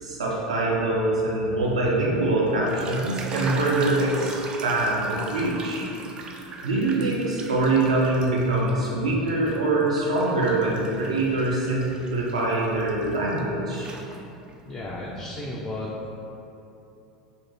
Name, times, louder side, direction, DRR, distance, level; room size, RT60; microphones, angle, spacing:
voice 1, 0.0-5.9 6.6-13.9, right 2 dB, 80° right, -4 dB, 0.6 m, -24 dB
sound 1, 2.5-8.9 9.3-13.4 13.7-14.6, right 3 dB, 30° right, 0.3 m, -39 dB
voice 2, 14.6-16.0, left 1 dB, 30° left, -5 dB, 0.5 m, -33 dB
2.8 x 2.6 x 4.2 m, 2.8 s
figure-of-eight pair, 80°, 3 cm